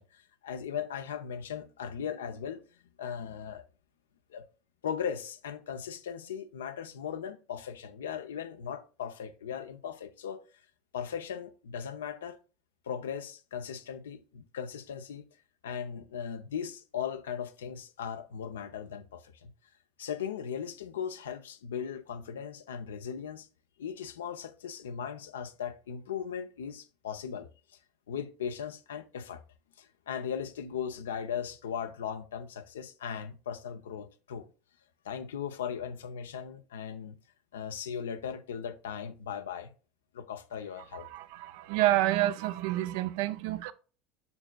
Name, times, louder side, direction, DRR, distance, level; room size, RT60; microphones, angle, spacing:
voice 1, 0.0-2.6 3.0-3.6 4.3-4.4 4.8-10.4 10.9-12.4 12.9-15.3 15.6-19.5 20.0-23.5 23.8-27.5 28.1-29.4 29.8-34.5 35.0-37.2 37.5-39.7 40.1-41.1, left 8 dB, 90° left, 0.6 m, -38 dB
voice 2, 40.9-43.7, right 15 dB, 70° right, 0.4 m, -29 dB
6.9 x 6.0 x 2.2 m
hypercardioid pair, 85°, 0 cm